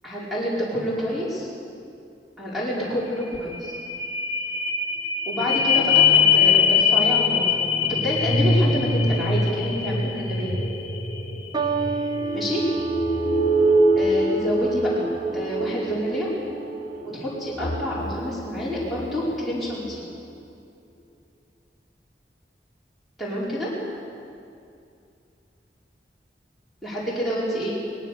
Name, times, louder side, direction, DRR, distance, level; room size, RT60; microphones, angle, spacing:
voice 1, 0.0-1.5 2.4-3.7 5.2-7.6 7.9-10.6 12.3-12.6 13.9-15.1 15.3-16.3 17.1-20.0 23.2-23.7 26.8-27.8, equal, ahead, -8 dB, 4.8 m, -28 dB
sound 1, 2.8-2.9 3.2-19.1 19.6-19.7, left 3 dB, 50° left, 2.5 m, -23 dB
sound 2, 11.5-18.1 18.9-19.3, right 5 dB, 25° right, 0.9 m, -33 dB
22.5 x 20.0 x 6.8 m, 2.5 s
head